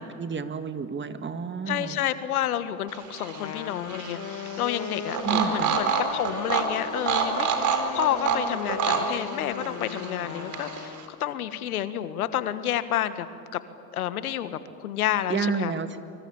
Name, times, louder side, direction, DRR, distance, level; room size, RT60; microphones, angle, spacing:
voice 1, 0.0-2.0 5.2-5.8 15.3-16.0, right 5 dB, 25° right, 10 dB, 1.9 m, -30 dB
voice 2, 1.7-13.3 13.5-13.6 13.9-15.7, left 11 dB, 80° left, 12 dB, 1.6 m, -30 dB
sound 1, 2.9-11.0, right 6 dB, 40° right, 4.4 m, -29 dB
Wind instrument woodwind instrument, 3.2-11.2, left 7 dB, 35° left, 1.3 m, -38 dB
25.0 x 24.5 x 8.8 m, 2.7 s
hypercardioid pair, 85°, 43 cm